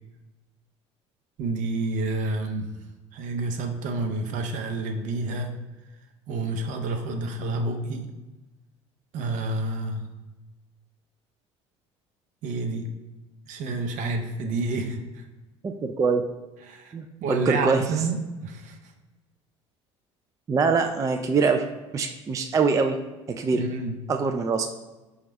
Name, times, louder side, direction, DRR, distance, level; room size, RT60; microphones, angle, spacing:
voice 1, 1.4-2.7 3.1-5.5 6.3-8.0 9.1-10.0 12.4-12.9 13.5-15.2 16.6-16.9 17.2-18.8 23.5-23.9, right 3 dB, 60° right, 5 dB, 0.6 m, -29 dB
voice 2, 15.6-16.2 16.9-17.8 20.5-21.6 21.9-23.0 23.4-23.6 24.1-24.7, right 4 dB, 20° right, 5 dB, 0.3 m, -23 dB
5.0 x 2.4 x 3.3 m, 1.1 s
hypercardioid pair, 70°, 15 cm